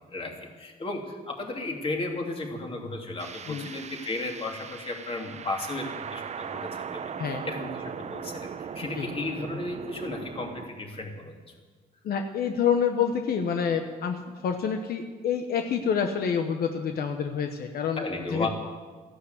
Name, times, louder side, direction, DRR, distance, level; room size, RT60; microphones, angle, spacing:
voice 1, 0.1-7.0 7.4-11.4 18.0-18.5, left 2 dB, 35° left, 1 dB, 2.9 m, -34 dB
sound 1, 3.2-10.7, right 7 dB, 45° right, 0.7 m, -39 dB
voice 2, 12.0-18.0 18.3-18.5, left 7 dB, 75° left, 5 dB, 1.1 m, -27 dB
14.5 x 11.5 x 8.1 m, 1.4 s
cardioid pair, 110°, 16 cm